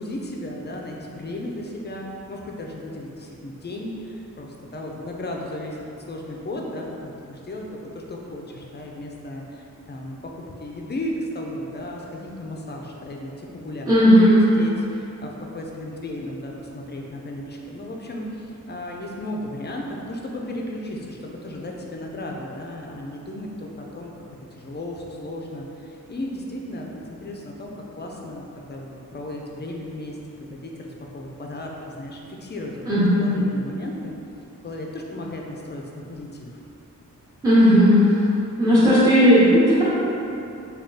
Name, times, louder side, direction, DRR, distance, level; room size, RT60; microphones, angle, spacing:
voice 1, 0.0-5.8 6.1-7.7 7.9-10.3 10.6-14.0 14.6-24.2 24.6-32.9 33.2-34.1 34.6-36.5, left 1 dB, 35° left, -1 dB, 0.4 m, -35 dB
voice 2, 13.9-14.5 32.8-33.4 37.4-38.1 38.6-39.8, equal, 10° right, -13 dB, 0.7 m, -15 dB
3.4 x 2.3 x 3.8 m, 2.8 s
wide cardioid pair, 150°, 32 cm